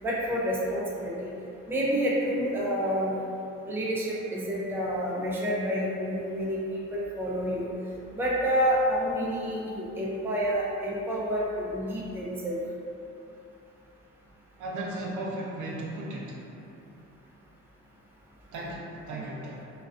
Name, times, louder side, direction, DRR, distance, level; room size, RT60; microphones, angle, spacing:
voice 1, 0.0-1.3 1.7-3.2 3.7-6.6 6.9-7.7 8.1-12.6 19.1-19.2, equal, 5° right, -5 dB, 0.4 m, -28 dB
voice 2, 14.6-16.4 18.5-19.6, right 1 dB, 75° right, -3 dB, 0.5 m, -35 dB
2.3 x 2.2 x 2.4 m, 2.7 s
cardioid pair, 90°, 30 cm